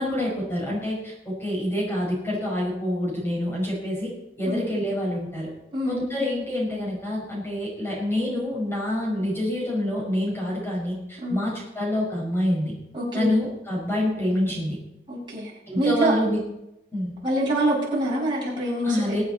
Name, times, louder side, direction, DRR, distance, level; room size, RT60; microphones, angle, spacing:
voice 1, 0.0-4.1 4.4-5.5 5.8-12.7 13.1-14.8 15.7-16.4 16.9-17.1 18.8-19.2, left 1 dB, 15° left, -4 dB, 5.3 m, -27 dB
voice 2, 5.7-6.1 11.2-11.4 12.9-13.3 15.1-15.5 15.8-16.1 17.2-19.2, right 1 dB, 25° right, -5 dB, 6.3 m, -25 dB
23.5 x 8.8 x 4.2 m, 0.86 s
head